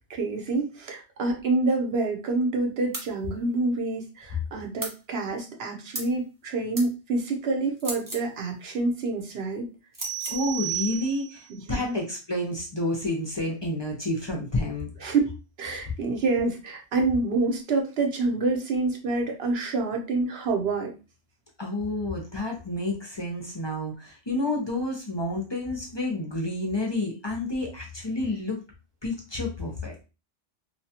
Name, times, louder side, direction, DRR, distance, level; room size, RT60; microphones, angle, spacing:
voice 1, 0.1-9.7 11.7-12.0 15.0-15.2 15.6-20.9, right 3 dB, 65° right, 2 dB, 0.9 m, -27 dB
sound 1, 2.9-3.1 4.8-5.0 5.9-6.2 6.7-6.9 7.8-8.3 9.9-10.4, right 1 dB, 25° right, 0.5 m, -35 dB
sound 2, 10.0-11.5, right 12 dB, 85° right, 1.1 m, -33 dB
voice 2, 10.3-14.9 21.6-28.6 29.0-29.9, left 2 dB, 35° left, -1 dB, 0.4 m, -29 dB
2.9 x 2.2 x 2.8 m, 0.31 s
omnidirectional pair, 1.2 m